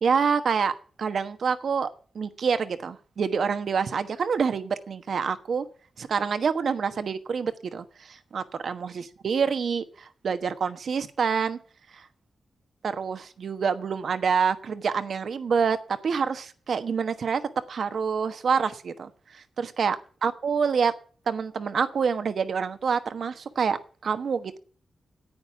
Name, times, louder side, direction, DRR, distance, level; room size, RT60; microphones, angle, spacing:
voice 1, 0.0-1.9 2.1-5.6 6.0-11.6 11.9-12.0 12.8-17.4 17.7-20.0 20.2-20.9 21.3-24.6, right 6 dB, 70° right, 10 dB, 1.2 m, -27 dB
10.5 x 9.0 x 7.0 m, 0.42 s
cardioid pair, 50°, 0 cm